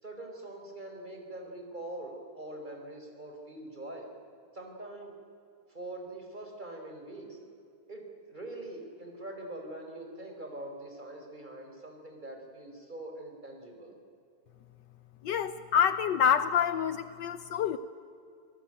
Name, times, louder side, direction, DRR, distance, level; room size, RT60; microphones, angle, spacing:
voice 1, 0.0-4.1 4.5-5.1 5.7-7.4 7.9-14.0, right 1 dB, 25° right, 2 dB, 4.4 m, -43 dB
voice 2, 15.2-17.8, left 8 dB, 70° left, 12 dB, 1.4 m, -27 dB
27.5 x 18.5 x 9.0 m, 2.5 s
omnidirectional pair, 2.1 m